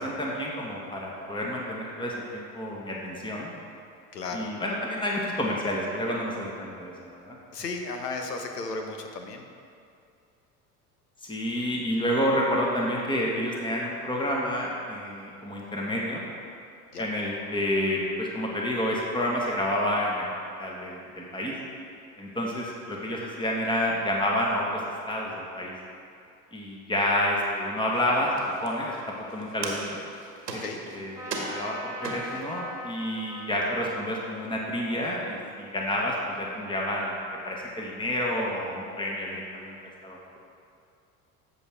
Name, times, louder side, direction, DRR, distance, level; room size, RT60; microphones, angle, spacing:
voice 1, 0.0-3.5 4.3-7.4 11.3-16.2 17.0-20.2 20.6-21.5 22.2-24.8 25.1-25.7 26.5-28.3 28.6-28.9 29.3-30.0 30.5-30.6 30.9-37.1 37.4-39.7 40.0-40.4, left 1 dB, 10° left, -3 dB, 1.7 m, -29 dB
voice 2, 4.1-4.5 7.5-9.4 16.9-17.1 30.5-30.8, left 3 dB, 85° left, 4 dB, 1.1 m, -34 dB
sound 1, 27.9-32.6 33.2-33.3 33.6-34.1, right 3 dB, 90° right, 1.4 m, -39 dB
Trumpet, 31.2-36.7, right 1 dB, 5° right, 2.1 m, -42 dB
14.0 x 6.4 x 3.6 m, 2.4 s
hypercardioid pair, 75°, 47 cm